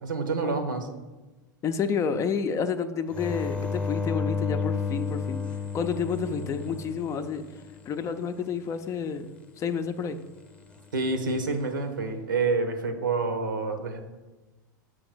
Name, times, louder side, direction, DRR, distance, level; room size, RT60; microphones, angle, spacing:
voice 1, 0.0-0.9 10.9-14.0, right 3 dB, 80° right, 7 dB, 1.0 m, -28 dB
voice 2, 1.6-5.4 5.7-7.4 7.9-9.3 9.6-10.2, left 6 dB, 30° left, 9 dB, 0.5 m, -29 dB
sound 1, 3.1-7.8 11.0-11.6, left 4 dB, 10° left, 0.8 m, -32 dB
6.4 x 3.9 x 6.1 m, 1.2 s
hypercardioid pair, 95°, 11 cm